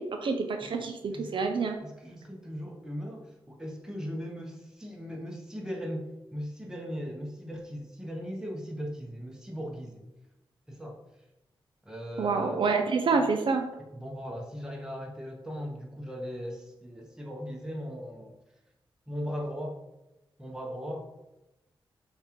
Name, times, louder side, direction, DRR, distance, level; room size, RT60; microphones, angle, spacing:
voice 1, 0.0-1.8 12.2-13.6, right 4 dB, 65° right, 5 dB, 0.4 m, -27 dB
voice 2, 1.1-1.5 1.8-10.0 10.7-11.0 11.8-12.7 13.9-18.4 19.1-19.8 20.4-21.0, equal, 5° right, 0 dB, 0.8 m, -38 dB
6.7 x 2.4 x 3.0 m, 0.95 s
wide cardioid pair, 115°, 9 cm